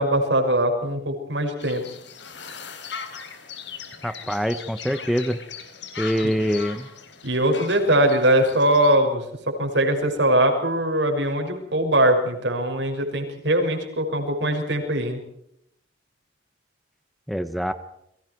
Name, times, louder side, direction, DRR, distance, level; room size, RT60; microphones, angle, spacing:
voice 1, 0.0-1.8 6.2-6.3 7.2-9.2 9.6-15.2, right 1 dB, 75° right, 4 dB, 6.2 m, -21 dB
sound 1, 1.6-9.0, left 6 dB, 75° left, 4.1 m, -39 dB
voice 2, 4.0-5.4 6.0-6.9 17.3-17.7, equal, ahead, 10 dB, 1.1 m, -24 dB
30.0 x 23.5 x 4.7 m, 0.76 s
head